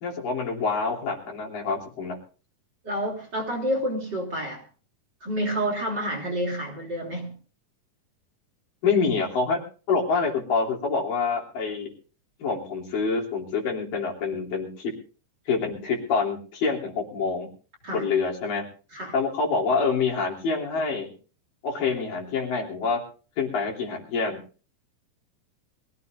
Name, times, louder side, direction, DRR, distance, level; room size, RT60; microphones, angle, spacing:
voice 1, 0.0-2.2 8.8-9.6 9.9-11.9 12.4-14.9 15.5-17.5 17.9-18.6 19.1-21.1 21.6-23.0 23.4-24.4, left 4 dB, 65° left, -1 dB, 4.8 m, -26 dB
voice 2, 2.8-4.6 5.2-7.3 17.8-18.1 18.9-19.1, equal, 30° right, 1 dB, 3.6 m, -29 dB
23.5 x 16.0 x 2.6 m, 0.38 s
omnidirectional pair, 4.2 m